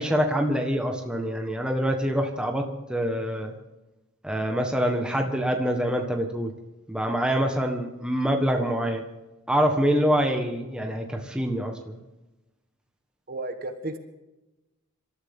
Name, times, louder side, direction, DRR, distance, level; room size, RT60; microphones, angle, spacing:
voice 1, 0.0-2.6 2.9-3.5 4.2-6.5 6.9-9.0 9.5-12.0, equal, 5° right, 2 dB, 1.4 m, -25 dB
voice 2, 13.3-14.0, right 2 dB, 40° right, 7 dB, 1.3 m, -33 dB
27.0 x 13.5 x 3.7 m, 1.0 s
head